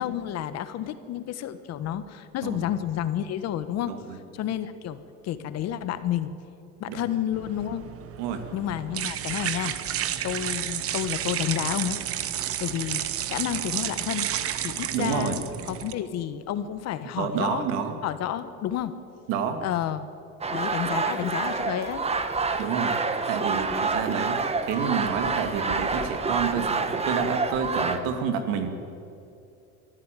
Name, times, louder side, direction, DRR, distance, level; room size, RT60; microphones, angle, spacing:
voice 1, 0.0-4.0 4.3-6.3 6.8-7.8 8.5-12.0 12.6-14.3 14.6-17.6 18.0-19.0 19.6-20.1 20.5-22.0, left 11 dB, 50° left, 12 dB, 1.4 m, -30 dB
voice 2, 3.9-4.2 6.9-7.0 8.2-8.5 14.9-15.4 17.2-18.0 19.3-19.6 22.6-23.0 23.3-28.7, right 6 dB, 75° right, 7 dB, 2.4 m, -29 dB
sound 1, 7.3-15.9, right 11 dB, 45° right, 1.2 m, -31 dB
sound 2, 20.4-28.0, right 4 dB, 20° right, 1.4 m, -28 dB
23.5 x 13.5 x 9.1 m, 2.6 s
cardioid pair, 125°, 33 cm